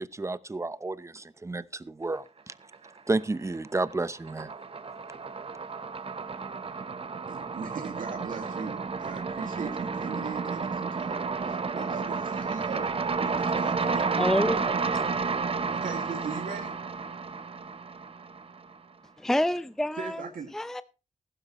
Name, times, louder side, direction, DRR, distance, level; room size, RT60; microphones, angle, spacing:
voice 1, 0.0-2.5 3.1-4.5, right 2 dB, 20° right, 16 dB, 0.8 m, -31 dB
sound 1, 2.5-3.2 3.5-18.7, right 4 dB, 45° right, 1.0 m, -31 dB
voice 2, 7.3-12.9 13.2-14.3 15.7-16.8 20.0-20.5, right 5 dB, 80° right, 3 dB, 2.1 m, -39 dB
voice 3, 13.7-15.2 19.2-20.3 20.5-20.8, left 1 dB, 5° left, 14 dB, 0.6 m, -29 dB
15.0 x 12.5 x 3.1 m, 0.31 s
cardioid pair, 75°, 14 cm